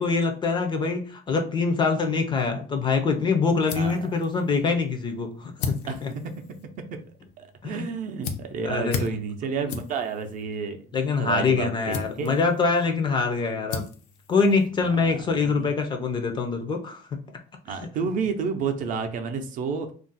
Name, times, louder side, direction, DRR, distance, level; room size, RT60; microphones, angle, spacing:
voice 1, 0.0-5.8 6.0-6.1 7.6-7.9 8.6-9.0 10.9-13.8 14.3-17.0 17.8-17.9, left 4 dB, 25° left, 5 dB, 0.4 m, -24 dB
sound 1, 3.1-15.2, left 5 dB, 75° left, 0.6 m, -39 dB
voice 2, 3.8-4.1 5.9-6.0 7.4-10.8 11.2-12.3 15.4-15.7 17.6-19.9, right 5 dB, 50° right, 7 dB, 0.5 m, -30 dB
2.5 x 2.0 x 3.8 m, 0.41 s
cardioid pair, 145°, 18 cm